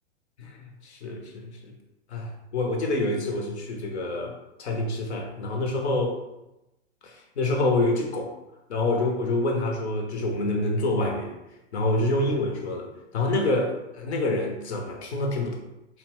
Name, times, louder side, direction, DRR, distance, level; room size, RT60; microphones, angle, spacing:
voice 1, 0.8-1.7 2.1-4.3 4.6-6.2 7.0-8.3 8.7-11.3 11.7-15.6, left 2 dB, 70° left, 1 dB, 0.8 m, -27 dB
2.8 x 2.1 x 2.9 m, 0.95 s
hypercardioid pair, 120°, 35 cm